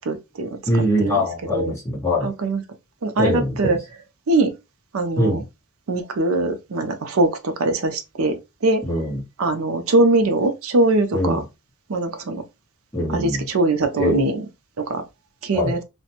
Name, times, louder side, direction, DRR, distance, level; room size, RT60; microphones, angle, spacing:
voice 1, 0.0-0.6 1.0-1.3 1.5-1.8 2.2-2.6 3.0-3.8 4.3-4.5 4.9-5.4 5.9-8.8 9.4-11.4 11.9-12.4 13.1-14.4 14.8-15.0 15.4-15.8, right 2 dB, 75° right, 0.5 m, -22 dB
voice 2, 0.6-2.3 3.1-3.8 5.2-5.4 8.8-9.2 11.1-11.4 12.9-13.5 14.0-14.3 15.5-15.8, left 1 dB, 15° left, 1.0 m, -22 dB
2.5 x 2.1 x 2.9 m
head